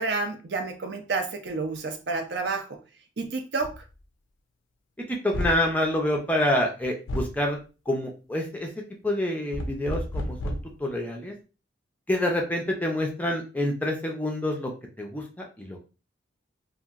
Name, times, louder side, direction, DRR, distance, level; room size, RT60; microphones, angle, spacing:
voice 1, 0.0-2.8 3.2-3.8, right 3 dB, 60° right, 6 dB, 0.5 m, -30 dB
sound 1, 3.6-3.8 5.3-5.7 7.1-7.4 9.5-10.8, left 1 dB, 90° left, 0.4 m, -31 dB
voice 2, 5.1-7.6 7.9-8.7 9.0-11.3 12.1-14.7 15.0-15.2 15.6-15.8, left 1 dB, 10° left, 1 dB, 0.4 m, -27 dB
2.8 x 2.5 x 2.4 m, 0.33 s
head